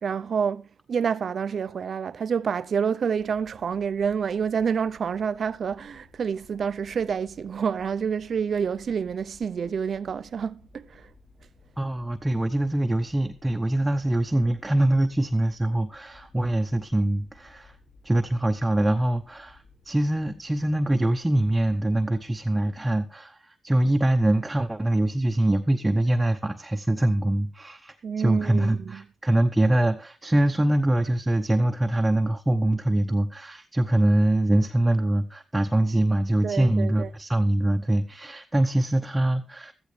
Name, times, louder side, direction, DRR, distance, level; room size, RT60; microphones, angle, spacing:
voice 1, 0.0-11.1 28.0-29.1 36.4-37.1, right 6 dB, 60° right, 0.6 m, -28 dB
sound 1, 3.1-22.7, left 3 dB, 65° left, 5.9 m, -57 dB
voice 2, 11.8-17.8 18.0-39.7, right 1 dB, 15° right, 0.9 m, -24 dB
15.0 x 13.5 x 3.2 m
cardioid pair, 90°, 0 cm